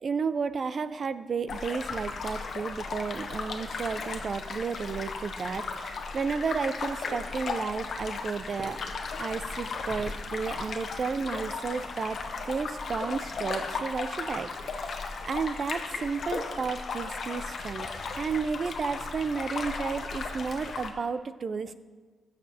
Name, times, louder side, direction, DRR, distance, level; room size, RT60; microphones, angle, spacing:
voice 1, 0.0-8.8 9.2-12.2 12.5-14.9 15.2-17.9 18.2-21.8, right 5 dB, 50° right, 13 dB, 0.4 m, -32 dB
sound 1, 1.5-20.9, left 4 dB, 60° left, 0.9 m, -36 dB
Crackle, 8.4-13.6, equal, ahead, 1.2 m, -52 dB
15.5 x 6.6 x 2.8 m, 1.4 s
cardioid pair, 105°, 0 cm